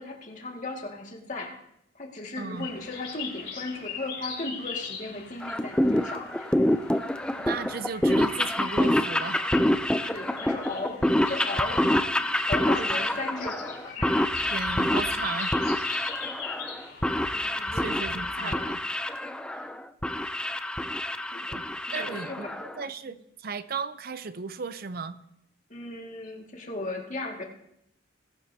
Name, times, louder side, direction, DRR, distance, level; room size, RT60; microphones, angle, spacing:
voice 1, 0.0-1.6 1.9-6.5 10.0-11.9 12.5-14.2 17.3-18.0 18.4-18.7 21.2-21.6 21.9-22.7 25.7-27.4, left 2 dB, 40° left, 2.0 m, -36 dB
voice 2, 2.4-2.7 7.4-9.5 14.5-15.6 17.7-18.8 19.5-19.7 21.5-21.6 21.9-22.5 22.8-25.2, right 5 dB, 50° right, 0.5 m, -35 dB
sound 1, 2.5-18.7, left 6 dB, 80° left, 4.1 m, -42 dB
sound 2, 5.4-22.8, left 1 dB, 5° left, 0.4 m, -27 dB
sound 3, 14.3-15.3 17.2-18.4, equal, 35° right, 2.2 m, -45 dB
20.5 x 11.5 x 2.8 m
head